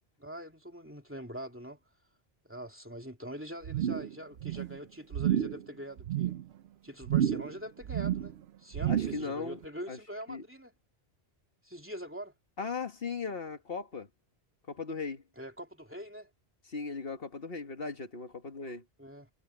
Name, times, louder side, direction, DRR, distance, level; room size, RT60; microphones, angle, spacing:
voice 1, 0.2-1.8 2.4-6.3 6.8-10.7 11.6-12.3 15.4-16.3 19.0-19.3, equal, 10° right, 2.6 m, -43 dB
sound 1, 3.6-4.1 4.4-4.8 5.1-5.6 6.0-6.4 7.0-7.6 7.8-8.3 8.7-9.3 9.6-9.7, right 11 dB, 80° right, 0.9 m, -30 dB
voice 2, 8.9-9.6 9.9-10.0 10.3-10.4 12.6-14.1 14.7-15.2 16.7-18.8, left 4 dB, 65° left, 2.0 m, -37 dB
omnidirectional pair, 1.1 m